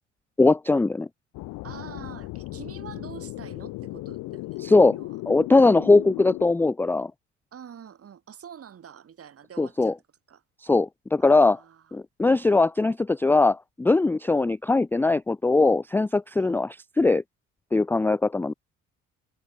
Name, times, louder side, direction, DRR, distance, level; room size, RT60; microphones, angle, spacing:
voice 1, 0.4-1.1 4.6-5.0 5.3-7.1 9.6-9.9 10.6-11.6 11.9-16.7 17.0-17.2 17.7-18.5, left 3 dB, 5° left, 0.4 m, -20 dB
sound 1, 1.3-6.5, left 20 dB, 60° left, 1.6 m, -36 dB
voice 2, 1.6-4.6 4.9-5.2 5.6-6.3 7.5-10.0 10.3-10.4 11.2-12.0 16.3-16.6, right 8 dB, 40° right, 3.4 m, -46 dB
figure-of-eight pair, 55°, 35 cm